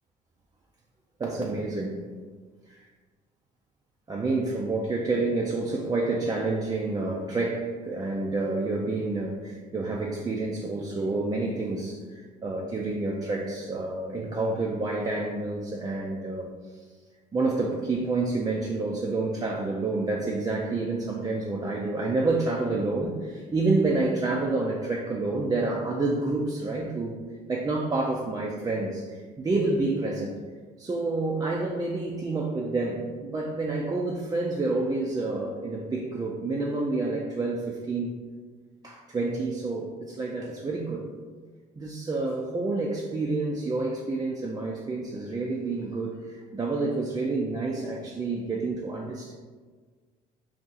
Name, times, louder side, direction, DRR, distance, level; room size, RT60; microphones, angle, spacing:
voice 1, 1.2-2.0 4.1-16.8 17.3-27.2 27.5-30.3 30.8-38.2 38.8-41.1 41.8-49.3, right 3 dB, 20° right, -2 dB, 0.4 m, -28 dB
2.7 x 2.4 x 3.8 m, 1.5 s
supercardioid pair, 80°, 18 cm